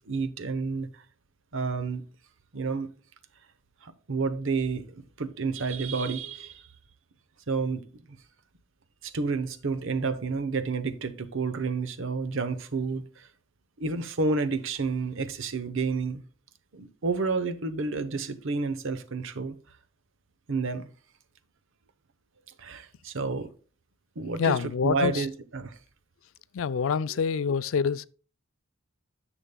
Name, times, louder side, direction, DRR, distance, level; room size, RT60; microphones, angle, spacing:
voice 1, 0.1-1.0 1.5-2.0 2.5-2.9 3.8-6.7 7.5-7.8 9.0-13.3 13.8-16.2 16.7-19.6 20.5-20.9 22.6-23.5 24.2-25.8 27.1-27.2, right 4 dB, 70° right, 0.8 m, -30 dB
voice 2, 24.4-25.3 26.5-28.1, left 6 dB, 70° left, 0.4 m, -26 dB
10.0 x 7.0 x 2.2 m
head